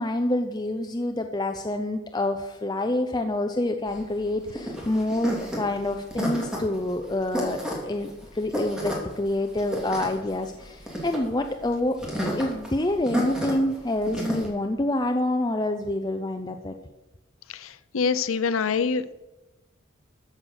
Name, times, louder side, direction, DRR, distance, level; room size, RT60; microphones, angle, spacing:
voice 1, 0.0-12.0 12.4-16.7, left 1 dB, 20° left, 5 dB, 0.7 m, -27 dB
sound 1, 3.9-14.5, equal, 5° right, 3.0 m, -31 dB
voice 2, 17.5-19.1, left 5 dB, 80° left, 14 dB, 0.6 m, -25 dB
14.0 x 7.6 x 6.5 m, 1.0 s
head